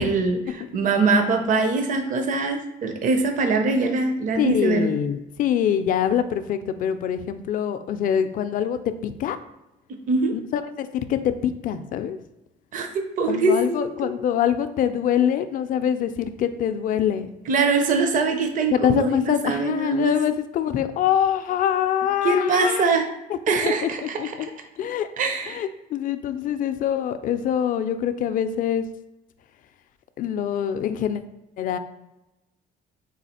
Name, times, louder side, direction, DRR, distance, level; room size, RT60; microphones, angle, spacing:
voice 1, 0.0-4.9 10.1-10.3 12.7-12.9 13.2-14.1 17.5-20.1 22.2-23.1 23.5-24.2 25.2-25.6, right 3 dB, 50° right, 5 dB, 0.6 m, -22 dB
voice 2, 4.4-9.4 10.3-12.2 13.2-17.3 18.7-22.9 23.3-23.4 23.6-23.9 24.2-24.5 24.8-25.1 25.5-28.8 30.2-31.2 31.6-31.8, left 9 dB, 55° left, 10 dB, 0.4 m, -24 dB
4.0 x 2.4 x 4.2 m, 0.98 s
cardioid pair, 110°, 17 cm